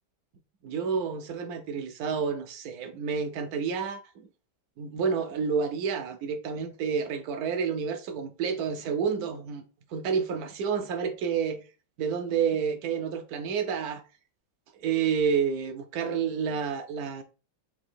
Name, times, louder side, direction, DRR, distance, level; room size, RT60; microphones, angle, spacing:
voice 1, 0.6-4.3 4.8-9.6 9.9-11.6 12.0-14.0 14.8-17.2, right 6 dB, 75° right, 0.9 m, -29 dB
3.6 x 2.8 x 4.2 m
omnidirectional pair, 2.1 m